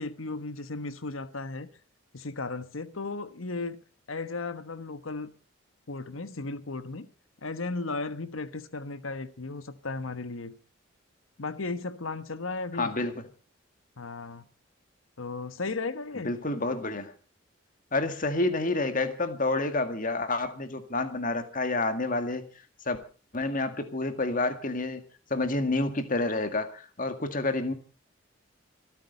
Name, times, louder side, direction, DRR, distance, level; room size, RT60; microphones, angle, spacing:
voice 1, 0.0-1.7 2.1-3.8 4.1-5.3 5.9-7.1 7.4-10.5 11.4-12.9 14.0-14.4 15.2-16.3, left 3 dB, 90° left, 1.3 m, -35 dB
voice 2, 12.8-13.1 16.3-17.1 17.9-22.4 22.9-23.0 23.3-25.0 25.3-27.7, left 2 dB, 40° left, 2.0 m, -29 dB
26.5 x 9.1 x 5.3 m
head